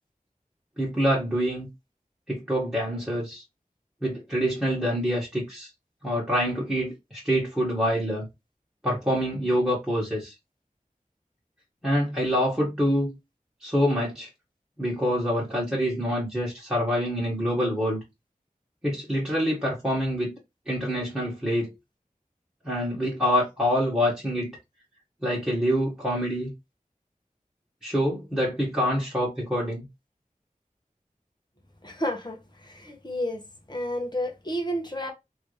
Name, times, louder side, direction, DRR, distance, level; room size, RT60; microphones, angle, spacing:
voice 1, 0.8-1.7 2.3-3.4 4.0-5.7 6.0-8.3 8.8-10.3 11.8-13.1 13.6-14.3 14.8-18.0 18.8-20.3 20.7-21.7 22.6-24.6 25.2-26.5 27.8-29.8, equal, 5° right, 1.5 m, -26 dB
voice 2, 31.8-33.4 33.7-35.1, equal, 30° left, 1.0 m, -31 dB
3.1 x 2.7 x 3.2 m
wide cardioid pair, 40°, 14 cm